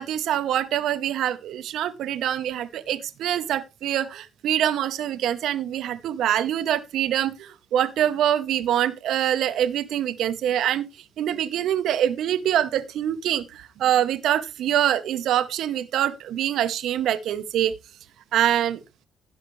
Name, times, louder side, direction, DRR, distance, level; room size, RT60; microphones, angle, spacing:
voice 1, 0.0-10.9 11.2-17.7 18.3-18.8, right 11 dB, 80° right, 0.9 m, -24 dB
16.5 x 5.8 x 3.2 m
cardioid pair, 90°, 0 cm